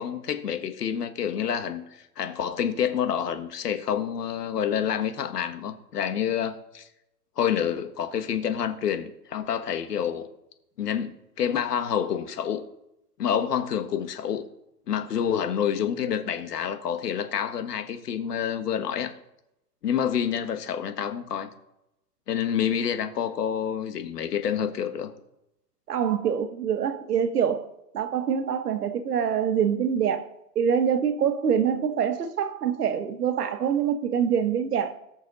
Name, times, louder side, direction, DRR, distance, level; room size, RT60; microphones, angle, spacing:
voice 1, 0.0-6.9 7.4-10.3 10.8-12.6 13.2-14.4 14.9-19.1 19.8-21.5 22.3-25.1, left 8 dB, 80° left, 1.7 m, -28 dB
voice 2, 25.9-27.7 27.9-30.3 30.5-34.9, right 8 dB, 80° right, 1.6 m, -25 dB
19.5 x 6.5 x 4.1 m
hypercardioid pair, 180°, 46 cm